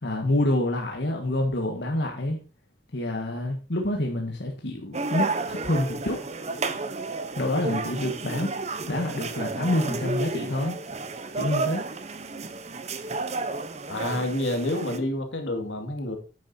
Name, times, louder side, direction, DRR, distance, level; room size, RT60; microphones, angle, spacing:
voice 1, 0.0-2.4 2.9-6.2 7.3-8.5 8.9-10.8 11.4-11.8, left 1 dB, 65° left, 1 dB, 1.7 m, -27 dB
sound 1, 4.9-15.0, right 3 dB, 35° right, 0.9 m, -32 dB
voice 2, 13.9-16.2, left 1 dB, 85° left, 4 dB, 2.4 m, -28 dB
10.5 x 8.9 x 2.8 m, 0.35 s
head